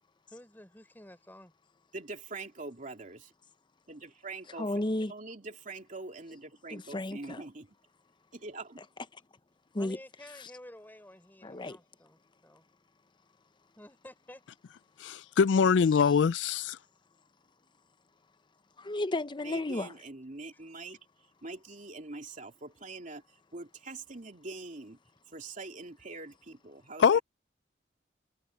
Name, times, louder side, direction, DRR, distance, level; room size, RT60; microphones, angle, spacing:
voice 1, 0.3-1.5 9.8-12.6 13.8-14.4 20.5-20.6, left 1 dB, 10° left, 5.6 m, -52 dB
voice 2, 1.9-3.3 3.9-4.7 5.1-7.7 8.3-8.8 19.4-21.0 21.4-23.2 23.5-25.0 25.3-27.2, right 3 dB, 45° right, 2.8 m, -44 dB
voice 3, 4.6-5.1 6.7-7.4 9.7-10.0 10.4-10.5 11.4-11.8 18.8-19.9, left 1 dB, 25° left, 0.7 m, -33 dB
voice 4, 15.0-16.8 27.0-27.2, left 6 dB, 80° left, 0.4 m, -23 dB
head